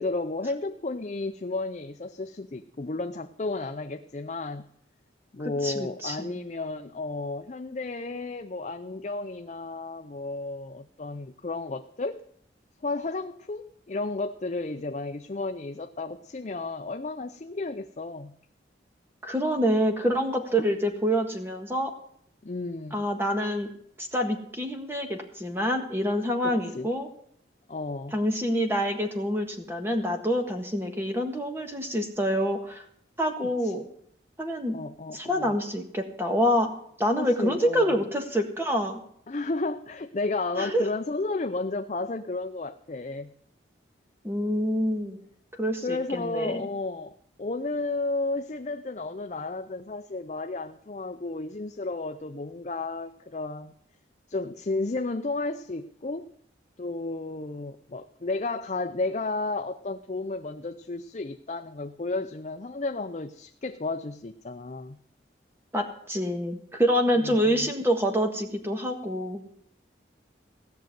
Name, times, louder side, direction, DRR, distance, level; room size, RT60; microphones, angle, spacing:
voice 1, 0.0-4.7 5.3-12.2 12.8-18.3 22.4-23.0 26.4-26.9 27.7-28.2 33.6-33.7 34.7-35.5 37.1-38.0 39.3-43.3 45.8-53.7 54.3-56.3 56.8-65.0 67.2-67.7, left 3 dB, 40° left, 7 dB, 0.5 m, -33 dB
voice 2, 5.6-6.4 19.2-21.9 22.9-23.7 24.0-27.1 28.1-32.8 33.2-33.8 34.4-34.7 35.1-36.7 37.0-39.0 40.6-40.9 44.2-45.2 45.6-46.6 65.7-69.4, equal, 15° right, 4 dB, 1.6 m, -26 dB
16.5 x 6.5 x 9.1 m, 0.67 s
head